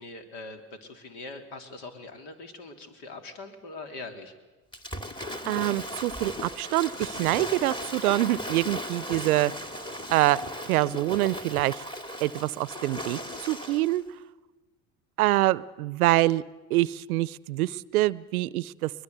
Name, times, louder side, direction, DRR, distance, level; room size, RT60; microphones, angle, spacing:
voice 1, 0.0-4.3, left 3 dB, 65° left, 6 dB, 3.2 m, -42 dB
Waves surf / Splash splatter, 4.7-14.0, equal, 10° left, 2.2 m, -37 dB
voice 2, 5.5-9.5 10.1-10.4 10.7-11.8 12.2-14.0 15.2-16.4 16.7-18.9, right 17 dB, 90° right, 20 dB, 0.6 m, -25 dB
22.0 x 21.5 x 8.1 m, 1.2 s
hypercardioid pair, 75°, 42 cm